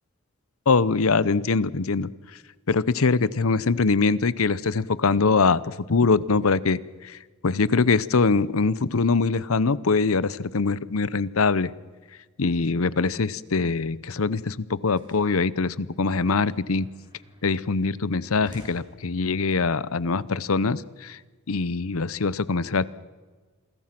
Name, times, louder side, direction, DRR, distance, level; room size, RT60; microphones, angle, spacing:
voice 1, 0.7-2.4 2.7-11.7 12.4-16.9 17.4-21.2 21.5-22.9, left 4 dB, 75° left, 19 dB, 0.8 m, -23 dB
sound 1, 14.9-19.5, equal, 20° right, 5.8 m, -51 dB
28.0 x 21.5 x 6.0 m, 1.4 s
head